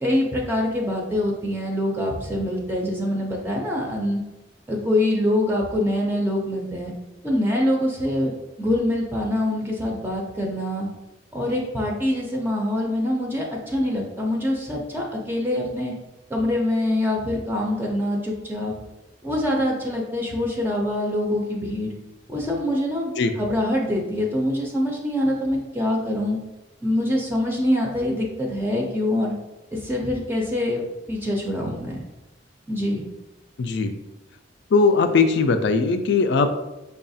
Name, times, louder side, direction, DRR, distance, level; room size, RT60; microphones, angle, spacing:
voice 1, 0.0-4.2 4.7-6.9 7.2-8.3 8.6-10.9 11.3-15.9 16.3-18.7 19.2-21.9 22.3-26.4 26.8-29.3 29.7-30.8 31.1-32.0 32.7-33.1, left 1 dB, 10° right, -1 dB, 0.4 m, -24 dB
voice 2, 33.6-33.9 34.7-36.6, left 4 dB, 65° left, 8 dB, 0.4 m, -19 dB
5.5 x 2.3 x 2.6 m, 1.0 s
head